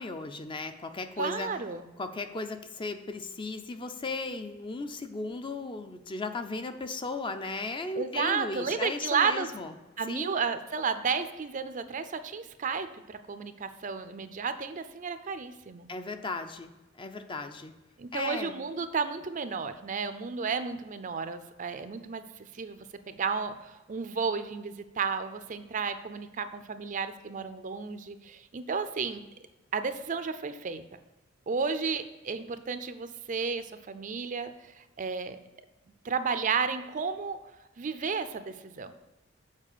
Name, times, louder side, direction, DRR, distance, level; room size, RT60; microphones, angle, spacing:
voice 1, 0.0-1.5 2.0-9.7 10.1-10.3 15.9-17.7 18.1-18.5, left 3 dB, 25° left, 8 dB, 0.5 m, -36 dB
voice 2, 1.2-1.8 8.0-9.5 10.0-15.9 18.0-29.2 29.7-30.8 31.5-35.4 36.0-37.4 37.8-38.9, right 5 dB, 40° right, 10 dB, 0.5 m, -32 dB
7.4 x 4.7 x 6.7 m, 1.1 s
head